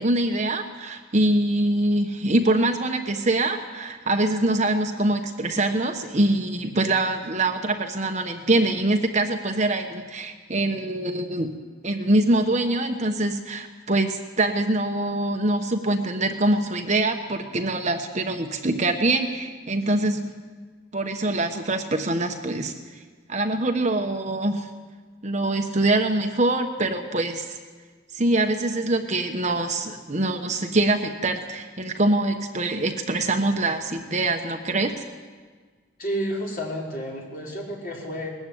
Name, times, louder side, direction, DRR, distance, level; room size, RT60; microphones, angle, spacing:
voice 1, 0.0-11.5 11.8-20.3 20.9-22.7 23.3-24.7 25.2-27.6 28.1-35.0, right 2 dB, 35° right, 5 dB, 1.2 m, -24 dB
voice 2, 36.0-38.3, equal, 45° left, -3 dB, 5.2 m, -30 dB
20.5 x 15.0 x 9.3 m, 1.5 s
head